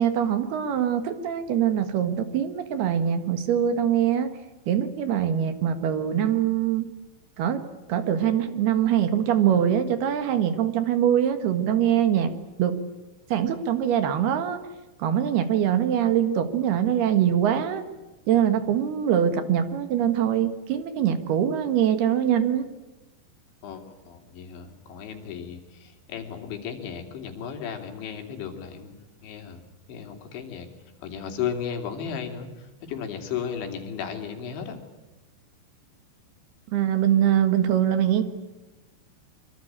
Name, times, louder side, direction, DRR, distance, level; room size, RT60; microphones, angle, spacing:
voice 1, 0.0-4.3 4.7-6.8 7.4-7.6 7.9-12.3 12.6-12.8 13.3-14.6 15.0-17.8 18.3-22.7 36.7-38.2, right 9 dB, 65° right, 10 dB, 3.3 m, -23 dB
voice 2, 23.6-29.0 29.2-29.6 29.9-30.7 31.0-34.8, left 7 dB, 80° left, 4 dB, 5.2 m, -35 dB
25.0 x 24.5 x 8.8 m, 1.1 s
omnidirectional pair, 5.2 m